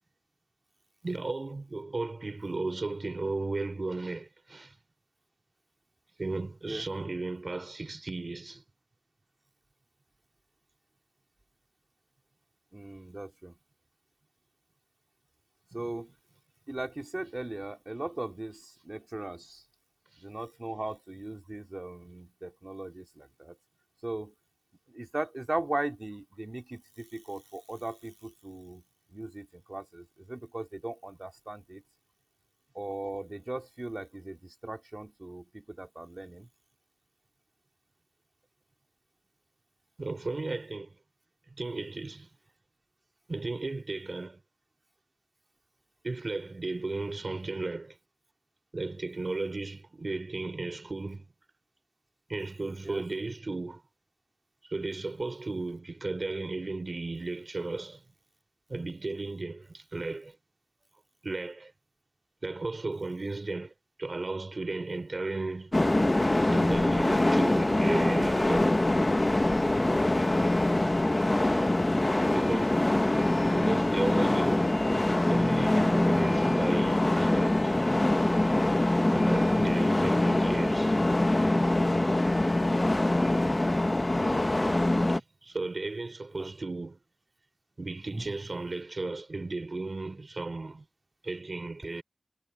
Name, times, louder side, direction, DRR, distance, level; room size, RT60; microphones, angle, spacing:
voice 1, 1.0-4.7 6.2-8.6 40.0-41.0 41.5-42.3 43.3-44.4 46.0-48.0 48.7-51.3 52.3-53.8 54.7-58.0 58.7-60.4 61.2-61.7 62.4-63.7 64.0-65.7 66.5-68.7 72.3-73.0 73.5-74.8 75.3-77.8 79.1-81.0 85.1-87.0 87.8-90.8 91.2-92.0, right 3 dB, 65° right, 2.9 m, -35 dB
voice 2, 12.7-13.6 15.7-16.1 16.7-19.6 20.2-23.6 24.0-24.3 24.9-28.8 29.1-31.8 32.7-36.5 52.8-53.0 70.3-70.4 74.4-74.5 79.4-80.0 83.3-84.0 86.4-86.5 88.1-88.3, right 1 dB, 35° right, 2.3 m, -38 dB
sound 1, 65.7-85.2, left 1 dB, 35° left, 0.9 m, -24 dB
wide cardioid pair, 60°, 0 cm